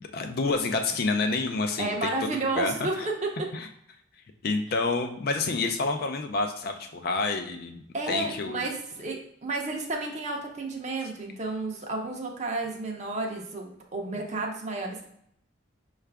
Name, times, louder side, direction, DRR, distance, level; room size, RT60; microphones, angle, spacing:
voice 1, 0.0-3.1 3.5-3.7 4.4-7.8 8.1-8.7, left 3 dB, 50° left, 5 dB, 0.4 m, -28 dB
voice 2, 1.8-3.1 7.9-15.1, right 2 dB, 35° right, 1 dB, 0.6 m, -32 dB
5.6 x 2.4 x 3.3 m, 0.70 s
head